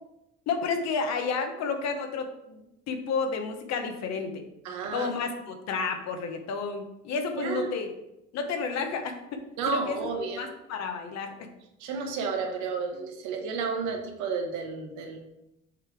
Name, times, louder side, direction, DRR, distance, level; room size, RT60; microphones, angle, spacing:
voice 1, 0.5-2.6 2.9-4.4 4.9-7.9 8.3-10.1 10.4-11.5, left 5 dB, 65° left, 6 dB, 1.1 m, -31 dB
voice 2, 4.6-5.1 7.4-7.7 9.6-10.5 11.8-15.2, right 5 dB, 85° right, 3 dB, 1.2 m, -31 dB
7.3 x 3.3 x 4.7 m, 0.86 s
cardioid pair, 90°, 29 cm